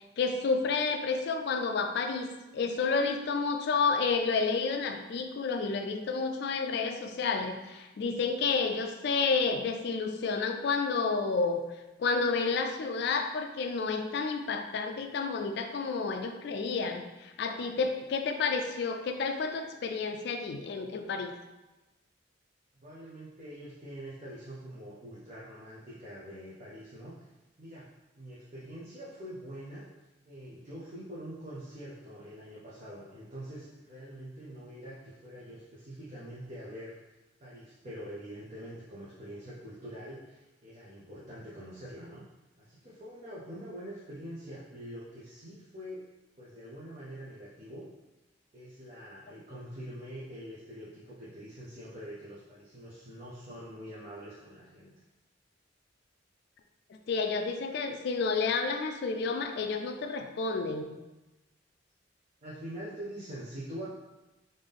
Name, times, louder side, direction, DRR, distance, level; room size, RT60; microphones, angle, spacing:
voice 1, 0.2-11.6 12.0-21.3 57.1-60.9, left 4 dB, 60° left, 5 dB, 0.3 m, -30 dB
voice 2, 22.8-27.3 27.6-27.8 28.2-29.9 30.2-42.2 42.6-46.0 46.4-47.8 48.5-54.9 62.4-63.9, equal, 35° right, -8 dB, 0.7 m, -44 dB
3.7 x 2.6 x 3.4 m, 1.1 s
head